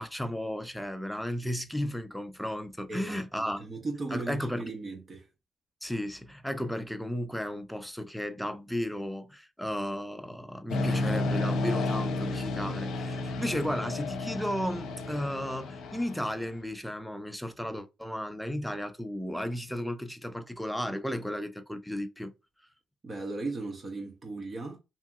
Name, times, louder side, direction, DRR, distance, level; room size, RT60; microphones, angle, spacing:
voice 1, 0.0-3.6 4.1-4.7 5.8-22.3, equal, 5° left, 0.5 m, -34 dB
voice 2, 2.9-5.3 23.0-24.8, right 3 dB, 45° right, 0.9 m, -37 dB
sound 1, 10.7-16.5, left 2 dB, 80° left, 0.6 m, -32 dB
2.7 x 2.6 x 2.3 m
supercardioid pair, 60°, 0 cm